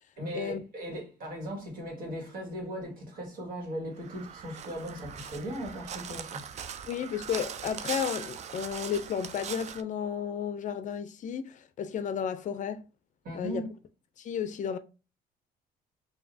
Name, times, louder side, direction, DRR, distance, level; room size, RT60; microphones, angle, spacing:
voice 1, 0.2-6.5 13.2-13.7, equal, 55° right, 1.9 m, -38 dB
Crow, 4.0-9.8, right 7 dB, 40° right, 0.4 m, -40 dB
voice 2, 6.9-12.8 13.3-13.6 14.2-14.8, left 8 dB, 50° left, 0.5 m, -33 dB
4.9 x 2.7 x 2.6 m
cardioid pair, 110°, 17 cm